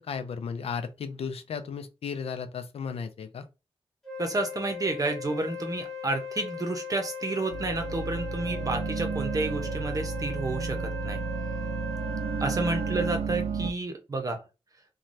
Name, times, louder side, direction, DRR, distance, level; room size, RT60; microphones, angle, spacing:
voice 1, 0.1-3.4, left 6 dB, 80° left, 0.4 m, -35 dB
Wind instrument woodwind instrument, 4.0-13.2, left 4 dB, 5° left, 1.4 m, -39 dB
voice 2, 4.2-11.2 12.4-14.4, right 2 dB, 35° right, 0.7 m, -30 dB
sound 1, 7.5-13.7, right 5 dB, 80° right, 0.4 m, -32 dB
3.1 x 2.2 x 2.6 m
wide cardioid pair, 105°, 10 cm